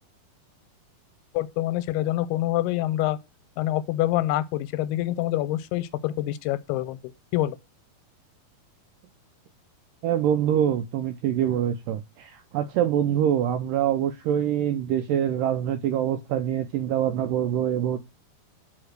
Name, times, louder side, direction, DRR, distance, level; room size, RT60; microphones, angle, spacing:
voice 1, 1.3-3.2 3.6-7.0 7.3-7.6, left 14 dB, 90° left, 2.6 m, -26 dB
voice 2, 10.0-18.0, right 10 dB, 85° right, 1.9 m, -25 dB
6.4 x 4.8 x 6.5 m
omnidirectional pair, 4.5 m